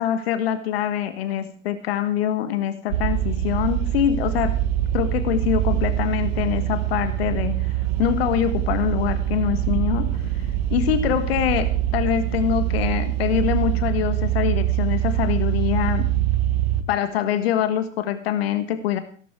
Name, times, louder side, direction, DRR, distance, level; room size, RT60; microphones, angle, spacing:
voice 1, 0.0-4.6 4.9-10.2 10.7-16.1 16.9-19.0, left 10 dB, 50° left, 10 dB, 1.6 m, -24 dB
sound 1, 2.9-16.8, right 12 dB, 50° right, 1.6 m, -24 dB
17.5 x 12.0 x 4.6 m, 0.44 s
figure-of-eight pair, 110°, 38 cm